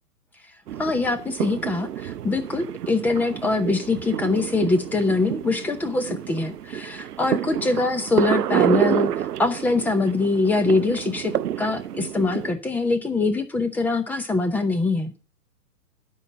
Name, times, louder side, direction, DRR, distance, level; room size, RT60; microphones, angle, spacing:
sound 1, 0.7-12.5, right 11 dB, 75° right, 0.6 m, -29 dB
voice 1, 0.8-15.1, left 3 dB, 5° left, 9 dB, 0.6 m, -23 dB
11.5 x 5.5 x 8.5 m, 0.35 s
hypercardioid pair, 130°, 46 cm